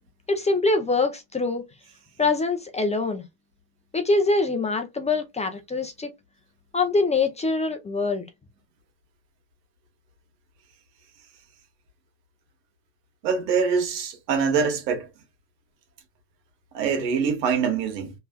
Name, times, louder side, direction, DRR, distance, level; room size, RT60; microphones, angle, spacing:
voice 1, 0.3-1.6 2.2-3.2 3.9-6.1 6.7-8.3, left 3 dB, 15° left, 0.6 m, -24 dB
voice 2, 13.2-15.1 16.7-18.1, right 6 dB, 85° right, 1.7 m, -24 dB
3.4 x 3.2 x 2.3 m
supercardioid pair, 115°, 49 cm